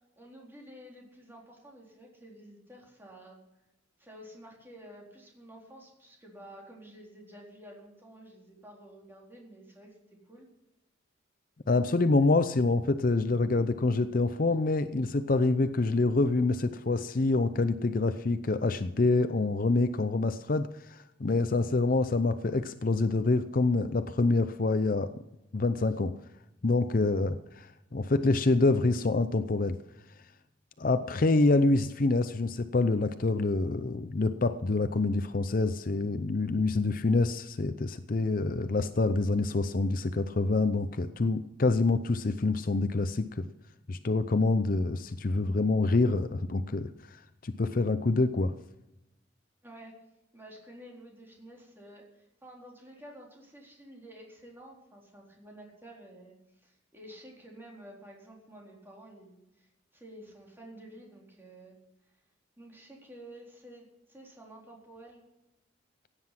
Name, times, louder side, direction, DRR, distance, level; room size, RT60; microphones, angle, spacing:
voice 1, 0.2-3.4 4.0-10.0 10.2-10.5 49.6-50.0 50.3-61.8 62.6-65.2, right 1 dB, 10° right, -2 dB, 4.0 m, -51 dB
voice 2, 11.7-25.1 25.5-26.1 26.6-29.8 30.8-43.5 43.9-46.9 47.4-48.5, left 3 dB, 45° left, 11 dB, 0.6 m, -26 dB
16.5 x 9.7 x 5.9 m, 0.91 s
head